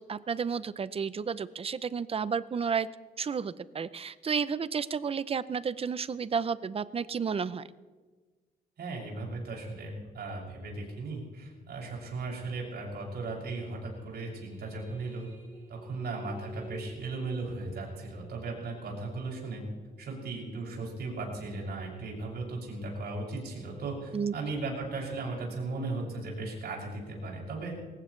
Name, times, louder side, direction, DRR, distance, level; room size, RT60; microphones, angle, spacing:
voice 1, 0.0-2.9 3.2-7.6 24.1-24.3, right 6 dB, 35° right, 16 dB, 0.6 m, -32 dB
voice 2, 8.8-15.3 15.7-19.6 20.0-27.7, right 3 dB, 75° right, -2 dB, 6.7 m, -37 dB
sound 1, 13.9-19.8, right 2 dB, 10° right, 5.4 m, -51 dB
23.0 x 19.0 x 3.3 m, 1.4 s
wide cardioid pair, 145°, 17 cm